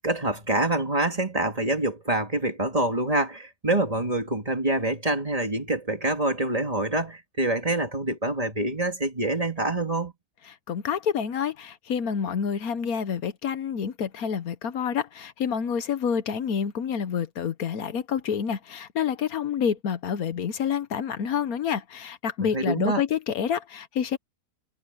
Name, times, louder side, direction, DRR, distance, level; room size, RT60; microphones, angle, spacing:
voice 1, 0.0-10.1 22.4-23.0, right 2 dB, 25° right, 2.4 m, -26 dB
voice 2, 10.5-24.2, left 7 dB, 75° left, 1.4 m, -28 dB
omnidirectional pair, 1.6 m